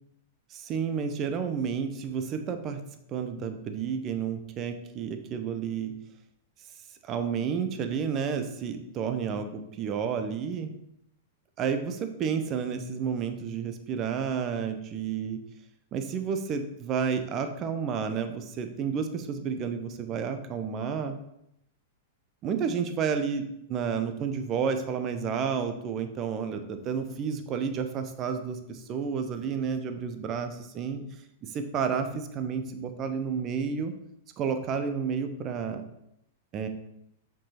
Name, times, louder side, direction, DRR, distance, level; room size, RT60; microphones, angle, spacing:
voice 1, 0.5-2.8 3.1-5.9 7.0-10.7 11.6-15.4 15.9-21.1 22.4-31.0 31.5-33.9 34.4-35.8 36.5-36.7, right 6 dB, 35° right, 7 dB, 0.8 m, -31 dB
6.0 x 4.7 x 4.4 m, 0.80 s
hypercardioid pair, 105°, 0 cm